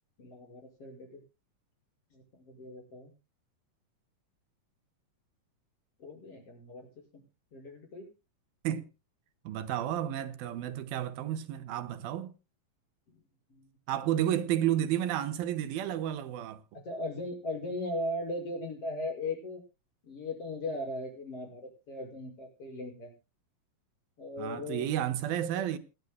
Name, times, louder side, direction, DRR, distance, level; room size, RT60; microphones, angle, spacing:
voice 1, 0.2-1.2 2.1-3.1 6.0-7.2 7.5-8.1 13.1-13.2 13.5-13.7 16.7-19.6 20.0-23.1 24.2-24.9, left 1 dB, 40° left, 6.9 m, -38 dB
voice 2, 9.4-12.3 13.9-16.6 24.4-25.8, right 11 dB, 90° right, 2.9 m, -31 dB
28.0 x 11.0 x 2.2 m
omnidirectional pair, 4.1 m